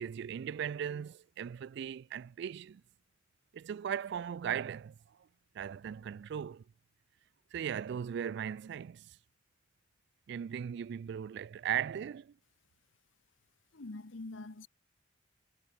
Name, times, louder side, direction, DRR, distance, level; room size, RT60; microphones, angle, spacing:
voice 1, 0.0-2.8 3.5-4.9 5.6-6.6 7.5-9.1 10.3-12.3, right 8 dB, 60° right, 0.3 m, -38 dB
voice 2, 13.7-14.7, left 2 dB, 75° left, 1.1 m, -44 dB
head